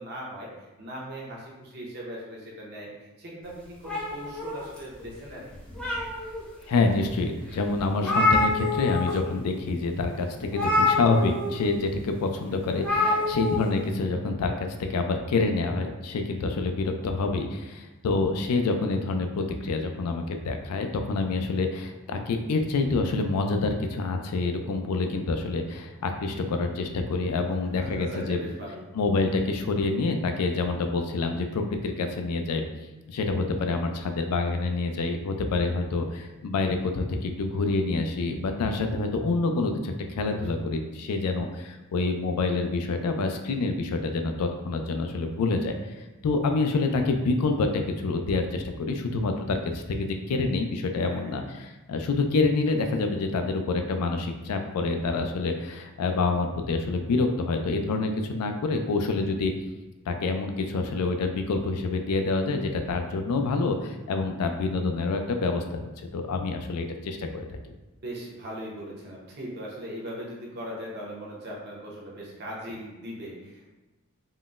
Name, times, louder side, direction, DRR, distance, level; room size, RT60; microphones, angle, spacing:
voice 1, 0.0-5.5 12.7-13.3 27.8-28.8 40.3-40.7 51.0-51.4 68.0-73.7, equal, 50° right, -3 dB, 0.7 m, -39 dB
sound 1, 3.8-5.1 5.5-6.4 7.0-7.1 7.5-7.6 7.8-9.1 9.4-9.6 10.5-11.6 12.8-13.6, left 2 dB, 5° left, 0.6 m, -26 dB
voice 2, 6.7-28.5 28.9-32.6 33.1-45.7 46.2-59.5 60.1-67.4, left 3 dB, 85° left, 5 dB, 0.4 m, -27 dB
3.7 x 2.0 x 2.4 m, 1.1 s
head